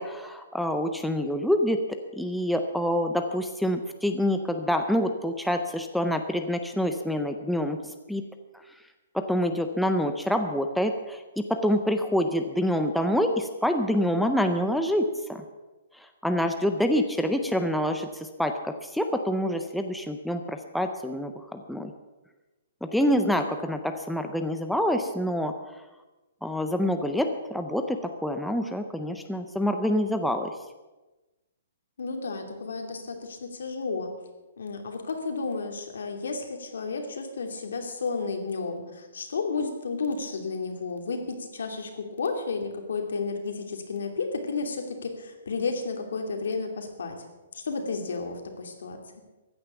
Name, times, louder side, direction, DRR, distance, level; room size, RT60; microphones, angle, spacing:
voice 1, 0.0-1.8 2.2-7.8 8.1-8.2 9.1-11.2 11.5-15.4 16.2-21.9 22.8-25.5 26.4-30.5, equal, ahead, 5 dB, 0.5 m, -26 dB
voice 2, 32.0-34.1 34.6-47.2 47.5-49.0, left 4 dB, 75° left, 4 dB, 2.8 m, -32 dB
14.5 x 9.8 x 7.0 m, 1.1 s
hypercardioid pair, 180°, 0 cm